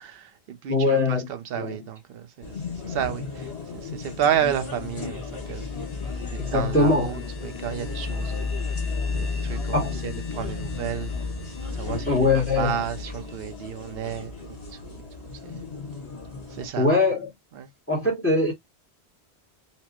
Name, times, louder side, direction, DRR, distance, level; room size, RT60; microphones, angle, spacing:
voice 1, 0.0-2.5 2.8-3.5 3.7-5.7 6.3-8.5 9.1-11.1 11.7-14.6 14.9-15.0 15.4-15.6 16.5-16.9 17.5-17.7, right 9 dB, 60° right, 0.8 m, -31 dB
voice 2, 0.7-1.3 1.5-1.7 6.4-7.1 9.7-10.0 12.1-12.8 16.8-17.3 17.9-18.5, left 3 dB, 15° left, 1.0 m, -22 dB
sound 1, 2.4-16.7, left 4 dB, 80° left, 1.8 m, -37 dB
sound 2, 4.1-14.6, left 4 dB, 50° left, 0.5 m, -34 dB
4.2 x 2.1 x 2.8 m
omnidirectional pair, 1.1 m